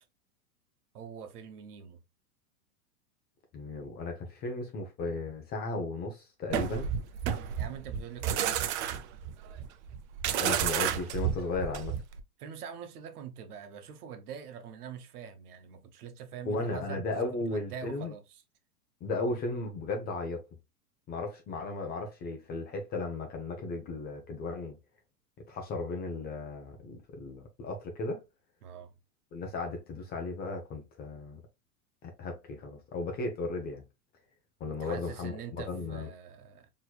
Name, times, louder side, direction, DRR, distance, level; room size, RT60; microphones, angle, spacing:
voice 1, 0.9-2.0 7.5-8.6 12.4-17.1 17.5-18.4 28.6-28.9 34.7-36.7, right 7 dB, 75° right, 1.0 m, -44 dB
voice 2, 3.5-6.9 10.4-12.0 16.5-18.1 19.0-20.4 21.1-24.8 25.5-28.2 29.3-31.4 32.0-33.8 34.6-36.1, left 3 dB, 20° left, 0.6 m, -35 dB
sound 1, 6.5-12.2, right 9 dB, 50° right, 0.6 m, -31 dB
4.3 x 3.0 x 2.2 m
hypercardioid pair, 125°, 46 cm